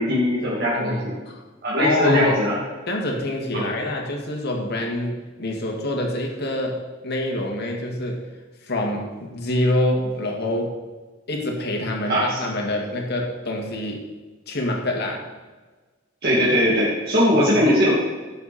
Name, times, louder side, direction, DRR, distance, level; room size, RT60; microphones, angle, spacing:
voice 1, 0.0-1.1 1.6-2.5 3.5-3.6 12.1-12.4 16.2-17.9, equal, 50° right, -7 dB, 2.6 m, -20 dB
voice 2, 0.7-1.4 1.8-2.4 2.9-8.3 8.6-10.7 11.3-14.0 14.5-15.3 17.3-17.5, left 1 dB, 55° left, 0 dB, 2.1 m, -26 dB
16.5 x 7.1 x 4.4 m, 1.3 s
head